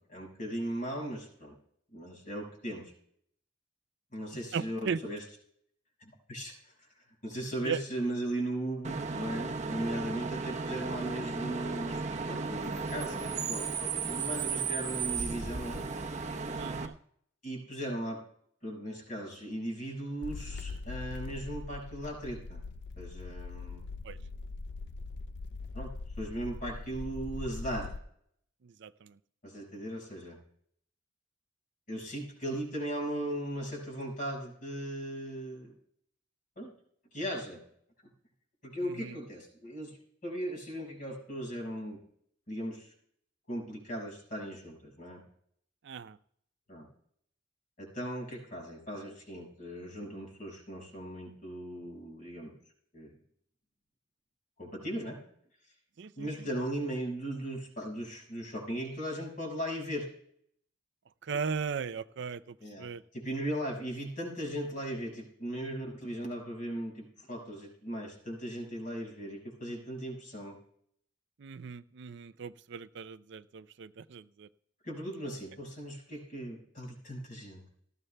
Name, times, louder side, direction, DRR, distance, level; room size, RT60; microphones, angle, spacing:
voice 1, 0.1-1.6 1.9-2.9 4.1-5.2 6.0-6.7 7.2-15.9 17.4-18.2 18.6-22.6 23.0-23.8 25.7-25.9 26.2-27.9 29.4-30.4 31.9-35.7 36.6-36.7 37.1-37.6 38.6-42.0 42.5-42.9 43.5-45.2 46.7-46.9 47.8-52.6 52.9-53.1 54.6-55.2 56.2-60.1 62.6-62.9 63.1-70.6 74.8-77.6, right 1 dB, 40° left, -1 dB, 5.5 m, -38 dB
voice 2, 4.3-5.0 7.6-7.8 16.5-17.0 24.0-24.2 28.6-29.2 38.8-39.2 45.8-46.2 56.0-56.5 61.2-63.0 71.4-74.5, right 6 dB, 60° right, 14 dB, 0.4 m, -38 dB
Bus / Idling / Screech, 8.8-16.9, right 4 dB, 35° right, 0.9 m, -35 dB
sound 1, 20.2-28.0, left 4 dB, 60° left, 0.4 m, -41 dB
18.5 x 14.5 x 2.2 m, 0.65 s
head